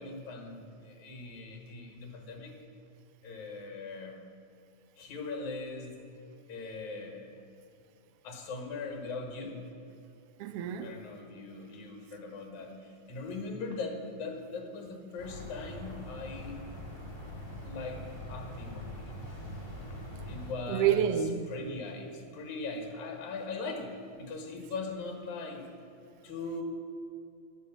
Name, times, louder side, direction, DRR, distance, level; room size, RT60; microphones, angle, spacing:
voice 1, 0.0-2.5 3.2-4.2 5.0-6.0 6.5-7.3 8.2-9.6 10.8-16.6 17.6-19.2 19.9-20.0 20.3-21.1 21.5-25.7 26.2-26.6, left 3 dB, 75° left, 2 dB, 2.9 m, -40 dB
voice 2, 10.4-10.9 20.7-21.5, right 9 dB, 75° right, 9 dB, 1.4 m, -28 dB
sound 1, 15.2-20.5, left 1 dB, 15° left, 1.2 m, -43 dB
11.0 x 6.8 x 7.8 m, 2.7 s
omnidirectional pair, 3.4 m